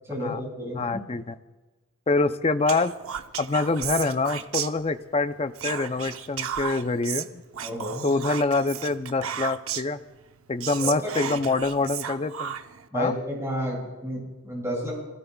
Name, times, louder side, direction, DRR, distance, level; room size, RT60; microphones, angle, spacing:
voice 1, 0.0-1.0 7.6-8.1 10.8-11.4 12.9-14.9, equal, 15° right, -4 dB, 6.3 m, -31 dB
voice 2, 0.7-1.3 2.1-2.9 3.4-7.4 8.0-10.0 10.5-12.5 12.9-13.1, left 3 dB, 30° left, 10 dB, 0.5 m, -25 dB
Whispering, 2.7-5.2 5.5-10.0 10.3-10.4 10.6-12.9, right 9 dB, 70° right, 0.8 m, -34 dB
27.5 x 17.5 x 2.3 m, 1.2 s
head